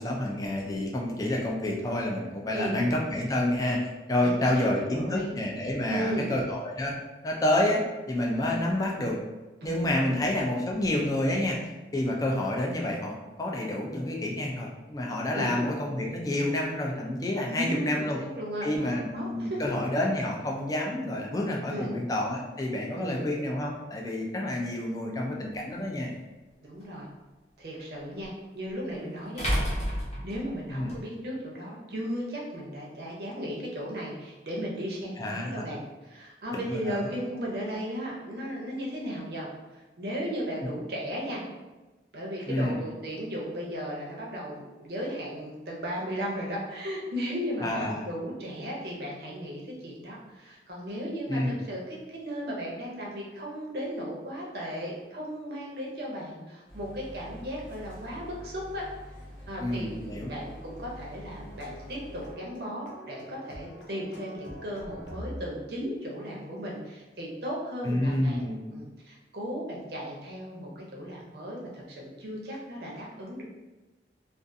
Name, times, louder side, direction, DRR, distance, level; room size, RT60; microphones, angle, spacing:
voice 1, 0.0-6.9 7.2-9.2 9.6-11.6 11.9-18.2 18.6-26.1 30.7-30.9 35.2-35.7 36.5-37.1 42.5-42.8 47.6-48.1 51.3-51.6 59.6-60.3 67.8-68.8, left 1 dB, 20° left, -1 dB, 0.3 m, -29 dB
voice 2, 4.3-5.3 5.9-6.3 9.6-9.8 10.1-10.2 15.3-15.6 17.4-19.7 21.7-22.0 22.9-23.3 26.6-27.1 27.6-29.8 30.2-41.4 42.1-58.9 59.5-73.4, equal, 60° right, -3 dB, 0.6 m, -36 dB
sound 1, 25.5-25.6 28.2-28.3 29.4-31.0, equal, 40° left, 0.8 m, -29 dB
sound 2, 56.7-62.3, equal, 15° right, 0.7 m, -46 dB
sound 3, 61.4-65.8, equal, 85° left, 0.5 m, -45 dB
2.4 x 2.4 x 2.6 m, 1.1 s
head